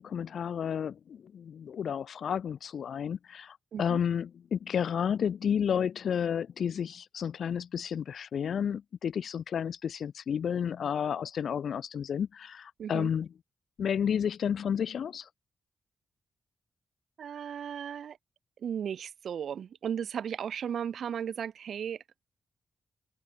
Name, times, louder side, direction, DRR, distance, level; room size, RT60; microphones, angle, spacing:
voice 1, 0.0-13.3 13.8-15.3, left 8 dB, 70° left, 1.9 m, -31 dB
voice 2, 12.8-13.1 17.2-18.2 18.6-22.0, right 8 dB, 75° right, 6.7 m, -35 dB
wide cardioid pair, 115°, 0 cm